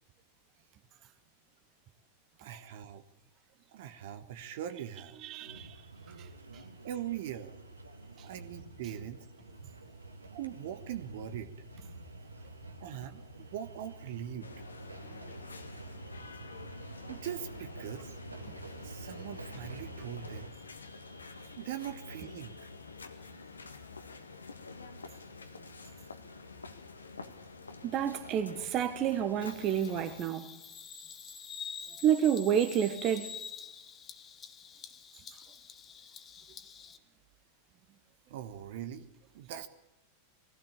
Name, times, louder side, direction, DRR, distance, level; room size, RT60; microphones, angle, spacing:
voice 1, 2.4-3.0 3.7-5.4 6.8-7.5 8.2-9.3 10.3-11.5 12.8-14.5 17.1-18.1 18.8-20.5 21.6-22.6 38.3-39.1 39.3-39.7, right 10 dB, 55° right, 1.5 m, -41 dB
voice 2, 5.2-5.7 27.8-30.5 32.0-33.3, right 9 dB, 35° right, 1.6 m, -29 dB
sound 1, 5.5-20.5, right 2 dB, 80° right, 2.1 m, -48 dB
sound 2, 14.4-30.2, left 4 dB, 75° left, 1.8 m, -48 dB
Bird vocalization bird call bird song, 29.4-37.0, left 6 dB, 25° left, 1.7 m, -47 dB
22.0 x 16.0 x 8.6 m
figure-of-eight pair, 90°, 0 cm